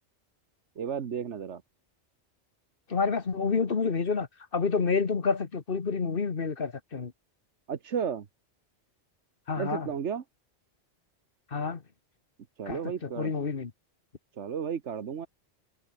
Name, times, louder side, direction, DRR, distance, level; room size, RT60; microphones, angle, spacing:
voice 1, 0.8-1.6 7.7-8.3 9.6-10.2 12.6-13.3 14.4-15.3, right 7 dB, 85° right, 1.5 m, -33 dB
voice 2, 2.9-4.3 4.5-7.1 9.5-9.9 11.5-11.8 12.7-13.7, left 5 dB, 55° left, 1.6 m, -29 dB
omnidirectional pair, 1.2 m